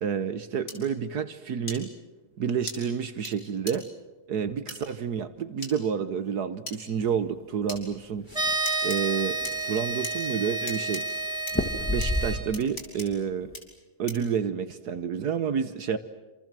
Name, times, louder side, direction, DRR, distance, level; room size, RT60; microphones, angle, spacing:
voice 1, 0.0-1.9 2.4-3.9 4.3-8.3 8.8-9.4 9.6-11.0 11.9-13.5 14.0-16.0, right 7 dB, 70° right, 11 dB, 1.6 m, -29 dB
sound 1, 0.7-0.8 1.7-1.8 2.7-2.8 3.3-3.4 3.7-3.8 4.7-4.8 5.6-5.7 6.7-6.8 7.7-7.8 8.7-9.0 9.4-10.1 10.7-11.0 11.5-11.6 12.0-12.1 12.5-13.1 13.5-13.6 14.1-14.3, left 2 dB, 60° left, 5.3 m, -37 dB
sound 2, 7.6-8.5 9.0-9.1 9.4-10.0 11.5-12.7 13.1-13.6, left 1 dB, 10° left, 1.4 m, -30 dB
sound 3, 8.3-12.4, right 3 dB, 15° right, 5.4 m, -30 dB
28.0 x 27.0 x 7.5 m, 1.2 s
omnidirectional pair, 1.8 m